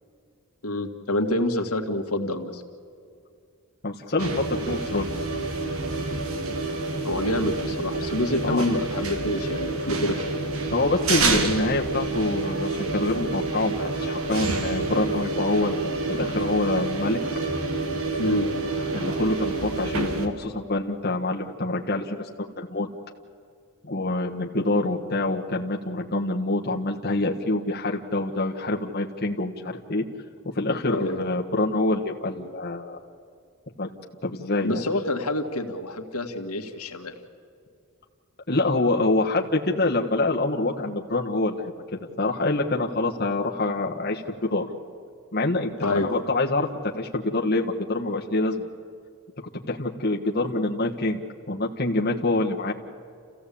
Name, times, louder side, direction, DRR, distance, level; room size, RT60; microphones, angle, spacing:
voice 1, 0.6-2.6 7.0-10.2 18.2-18.5 30.9-31.2 34.6-37.1 45.8-46.1, left 1 dB, 90° left, 4 dB, 2.0 m, -27 dB
voice 2, 3.8-5.0 8.4-8.7 10.7-17.2 18.9-22.3 22.6-22.9 23.8-30.0 30.5-33.0 33.8-33.9 34.2-34.8 38.5-44.7 45.3-46.7 46.9-48.7 49.7-51.2 51.5-52.7, left 2 dB, 45° left, 0 dB, 1.4 m, -26 dB
sound 1, 4.2-20.3, right 3 dB, 75° right, 2.1 m, -28 dB
28.5 x 16.0 x 8.6 m, 2.4 s
head